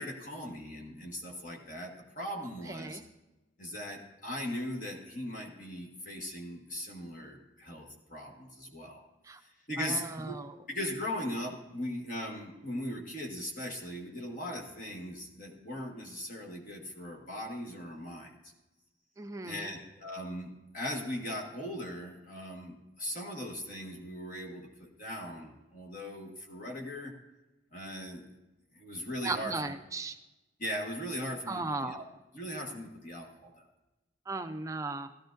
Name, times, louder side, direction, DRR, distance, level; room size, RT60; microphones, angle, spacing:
voice 1, 0.0-3.0 3.6-9.0 9.4-10.4 10.7-18.5 19.4-27.1 27.7-28.3 28.7-29.7 30.6-32.0 32.3-33.7, equal, 40° left, 0 dB, 1.3 m, -39 dB
voice 2, 2.7-3.0 9.2-9.4 9.8-10.6 19.2-19.7 29.2-30.2 31.5-32.0 34.3-35.1, right 3 dB, 15° right, 7 dB, 0.4 m, -37 dB
13.5 x 13.5 x 2.6 m, 1.0 s
head